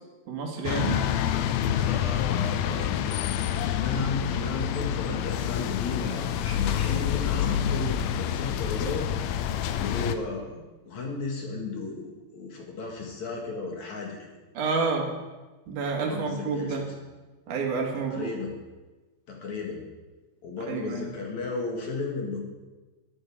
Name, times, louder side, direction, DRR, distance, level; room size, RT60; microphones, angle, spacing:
voice 1, 0.3-1.0 14.5-15.1 15.7-16.8 17.5-18.3 20.7-21.0, right 4 dB, 60° right, 1 dB, 2.9 m, -29 dB
sound 1, 0.6-10.1, left 10 dB, 80° left, 2.4 m, -27 dB
voice 2, 1.7-3.0 3.5-14.3 16.0-17.0 18.0-18.6 19.3-19.8 20.4-22.4, left 3 dB, 55° left, 0 dB, 2.7 m, -34 dB
12.5 x 11.5 x 4.9 m, 1.2 s
omnidirectional pair, 4.5 m